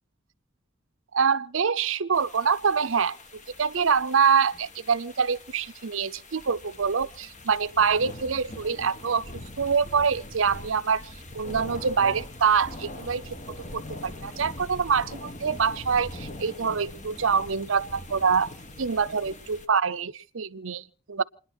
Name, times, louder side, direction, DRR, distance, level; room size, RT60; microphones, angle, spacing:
voice 1, 1.1-3.2 3.6-9.3 9.6-11.1 11.3-13.3 13.7-18.5 18.8-21.2, right 6 dB, 70° right, 0.7 m, -25 dB
sound 1, 2.1-19.7, left 1 dB, 35° left, 1.5 m, -42 dB
28.5 x 10.5 x 4.4 m
head